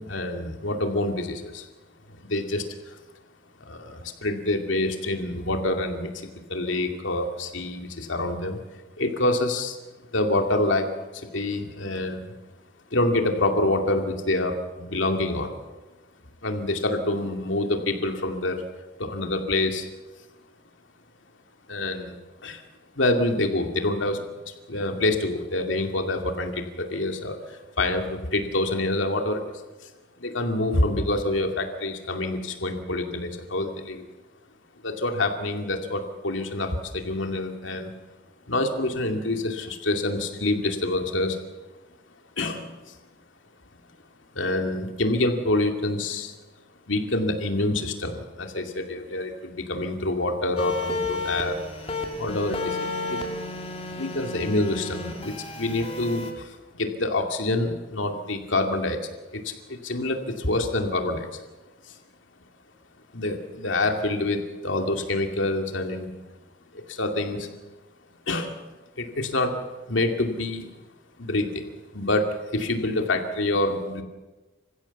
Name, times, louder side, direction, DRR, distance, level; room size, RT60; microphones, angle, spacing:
voice 1, 0.0-1.7 2.1-3.0 3.6-8.6 9.0-9.8 10.1-12.3 12.9-15.6 16.4-18.6 19.0-19.9 21.7-22.1 22.4-22.6 23.0-29.4 30.2-34.0 34.8-37.9 38.5-41.4 42.4-42.9 44.3-46.3 46.9-53.2 54.0-59.0 59.3-61.3 61.8-61.9 63.1-66.1 66.7-67.5 68.3-68.6 69.0-69.6 69.9-70.7 71.2-71.6 71.9-74.0, left 2 dB, 80° left, 4 dB, 2.4 m, -27 dB
sound 1, 50.6-56.3, left 3 dB, 30° left, 2.4 m, -32 dB
26.5 x 15.5 x 7.1 m, 1.2 s
head